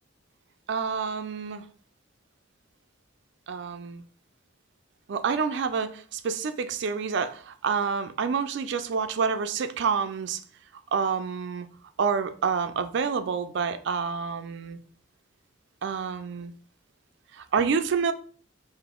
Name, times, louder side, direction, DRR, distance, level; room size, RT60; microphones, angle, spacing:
voice 1, 0.7-1.6 3.5-4.0 5.1-10.4 10.9-11.7 12.0-14.8 15.8-16.5 17.3-18.1, right 6 dB, 60° right, 0.4 m, -28 dB
3.9 x 2.5 x 3.6 m
head